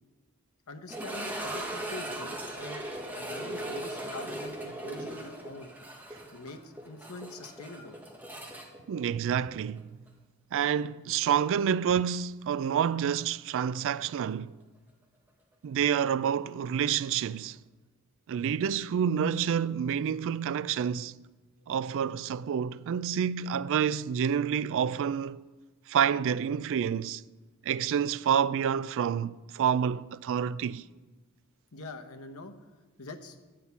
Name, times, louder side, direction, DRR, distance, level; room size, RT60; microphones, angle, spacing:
voice 1, 0.7-2.8 3.1-5.7 6.3-8.0 31.7-32.5 33.0-33.4, left 2 dB, 75° left, 1.0 m, -44 dB
sound 1, 0.9-9.8 10.1-10.2 10.8-10.9 13.5-13.6, right 1 dB, 10° right, 1.5 m, -38 dB
voice 2, 8.9-9.9 10.5-14.6 15.6-17.6 18.3-21.2 21.7-25.4 25.9-27.2 27.7-30.8, right 8 dB, 60° right, 0.3 m, -28 dB
10.0 x 5.7 x 8.2 m
head